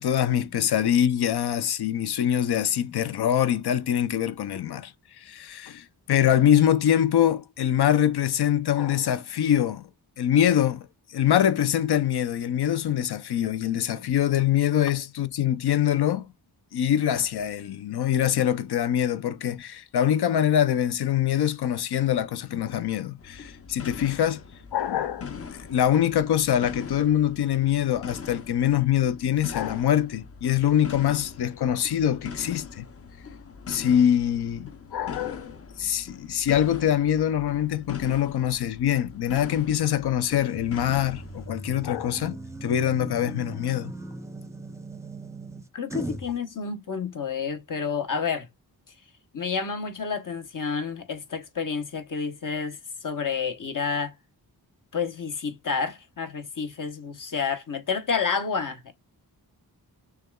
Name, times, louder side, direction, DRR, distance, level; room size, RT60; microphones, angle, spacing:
voice 1, 0.0-4.9 5.2-9.8 10.2-16.3 16.7-24.4 24.7-32.9 33.7-43.9, left 10 dB, 80° left, 0.6 m, -24 dB
sound 1, 23.2-41.5, left 6 dB, 35° left, 0.6 m, -41 dB
sound 2, 40.5-46.4, right 2 dB, 10° right, 0.6 m, -39 dB
voice 2, 45.7-48.5 49.3-54.1 54.9-58.9, left 5 dB, 55° left, 1.0 m, -29 dB
6.4 x 2.4 x 2.2 m
wide cardioid pair, 110°, 39 cm